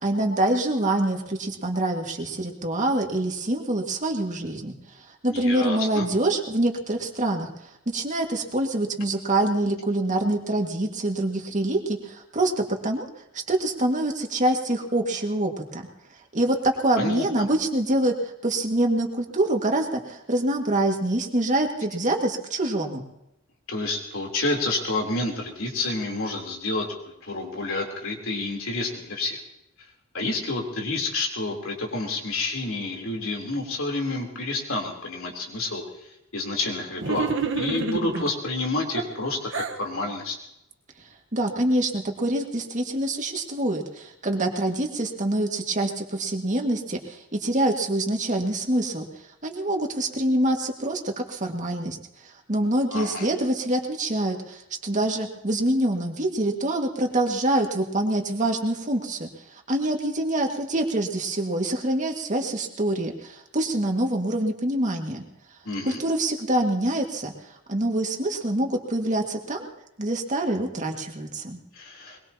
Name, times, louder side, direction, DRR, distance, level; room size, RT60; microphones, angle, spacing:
voice 1, 0.0-4.7 5.2-7.5 7.9-13.1 13.3-15.8 16.3-23.0 41.3-49.1 49.4-52.0 52.5-65.2 65.8-67.3 67.7-69.7 70.0-71.6, right 1 dB, 40° right, 2 dB, 2.1 m, -25 dB
voice 2, 5.3-6.0 17.0-17.2 23.7-29.4 30.1-35.8 36.3-40.4 52.9-53.3 65.6-66.0 71.7-72.2, left 2 dB, 75° left, 1 dB, 3.7 m, -29 dB
sound 1, 37.0-38.3 38.9-39.8, right 4 dB, 65° right, 1.3 m, -28 dB
22.5 x 22.0 x 3.0 m, 0.86 s
head